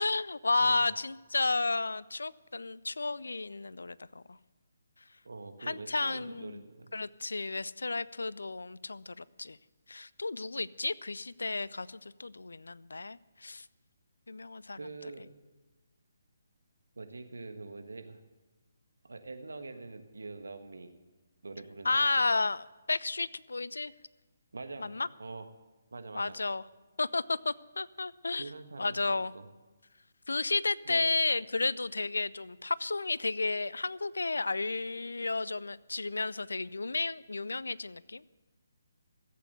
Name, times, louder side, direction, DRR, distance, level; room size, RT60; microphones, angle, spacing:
voice 1, 0.0-4.4 5.6-6.6 6.9-9.6 9.9-13.7 14.3-14.8 21.8-23.9 24.8-25.1 26.1-26.6 27.0-28.5 28.8-29.3 30.3-38.3, left 3 dB, 75° left, 20 dB, 0.4 m, -32 dB
voice 2, 0.6-0.9 5.2-7.0 14.7-15.3 16.9-18.2 19.0-20.9 21.4-22.2 24.5-24.9 25.2-25.5 25.9-26.3 28.4-29.0 29.3-29.5 30.8-31.1, right 3 dB, 75° right, 7 dB, 1.4 m, -44 dB
14.5 x 8.4 x 7.9 m, 1.2 s
figure-of-eight pair, 145°, 0 cm